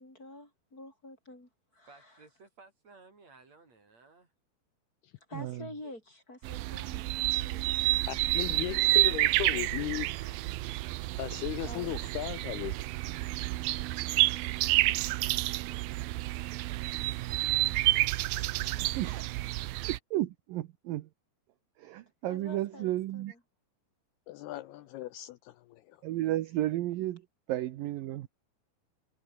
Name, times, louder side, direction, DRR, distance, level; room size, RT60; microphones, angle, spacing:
voice 1, 0.0-2.1 5.3-7.9 11.6-11.9 22.3-23.4 27.8-27.9, left 2 dB, 20° left, 6.2 m, -48 dB
voice 2, 1.9-4.3 8.7-10.8, right 3 dB, 40° right, 5.7 m, -60 dB
voice 3, 5.3-5.7 18.8-19.5 20.1-21.1 21.8-23.3 26.0-28.3, right 15 dB, 70° right, 2.2 m, -33 dB
sound 1, 6.4-20.0, right 18 dB, 90° right, 2.1 m, -29 dB
voice 4, 8.1-10.1 11.2-12.7 24.3-26.0, left 16 dB, 80° left, 2.5 m, -37 dB
omnidirectional pair, 5.1 m